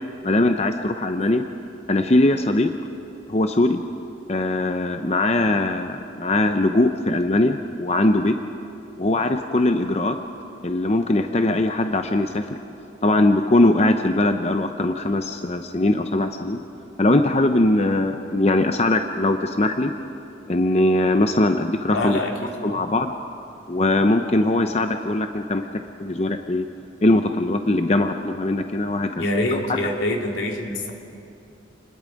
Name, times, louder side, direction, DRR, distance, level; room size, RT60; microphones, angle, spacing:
voice 1, 0.2-1.5 1.9-2.7 3.3-3.8 4.3-8.4 9.0-10.2 10.6-12.5 13.0-16.6 17.0-19.9 20.5-22.2 22.6-23.1 23.7-25.7 26.0-26.6 27.0-29.2 29.5-29.6, left 2 dB, 35° left, 7 dB, 0.7 m, -21 dB
voice 2, 21.9-22.3 22.7-22.8 29.2-30.9, left 1 dB, 80° left, 1 dB, 2.7 m, -25 dB
29.0 x 20.5 x 5.2 m, 2.7 s
head